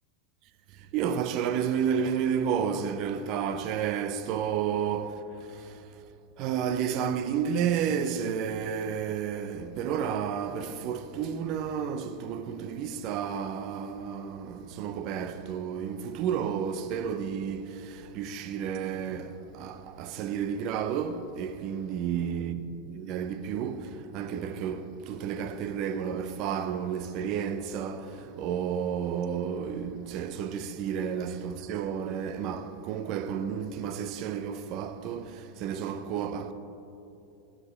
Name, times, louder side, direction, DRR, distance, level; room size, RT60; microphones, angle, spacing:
voice 1, 0.9-5.8 6.4-36.5, right 7 dB, 50° right, 0.5 m, -31 dB
12.0 x 4.9 x 3.2 m
supercardioid pair, 125°, 0 cm